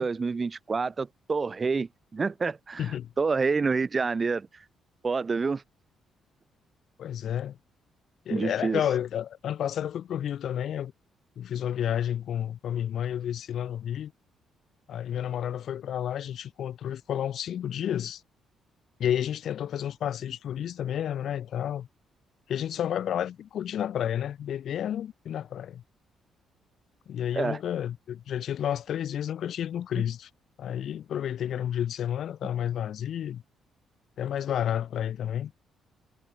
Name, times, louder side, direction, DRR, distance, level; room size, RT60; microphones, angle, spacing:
voice 1, 0.0-2.9 3.2-4.6 5.0-5.6 8.3-8.8 27.3-27.6 30.0-30.1, right 4 dB, 30° right, 6.1 m, -28 dB
voice 2, 2.8-3.1 7.0-7.6 8.3-10.9 11.4-14.1 14.9-18.2 19.0-21.9 22.5-25.8 27.1-30.3 30.6-33.4 34.2-35.5, left 10 dB, 65° left, 5.0 m, -31 dB
cardioid pair, 90°, 0 cm